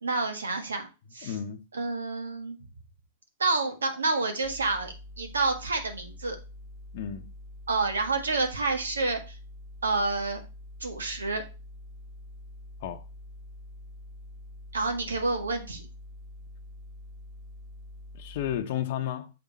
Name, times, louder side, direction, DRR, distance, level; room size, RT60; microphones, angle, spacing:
voice 1, 0.0-0.9 1.1-1.3 1.7-2.6 3.4-6.4 7.7-9.2 9.8-10.4 10.8-11.4 14.7-15.8, right 3 dB, 85° right, 1.6 m, -28 dB
voice 2, 1.2-1.6 6.9-7.3 12.8-13.0 18.1-19.3, left 10 dB, 55° left, 0.8 m, -32 dB
sound 1, 4.4-18.6, left 1 dB, 35° right, 1.9 m, -46 dB
6.9 x 5.3 x 4.1 m
hypercardioid pair, 110°, 0 cm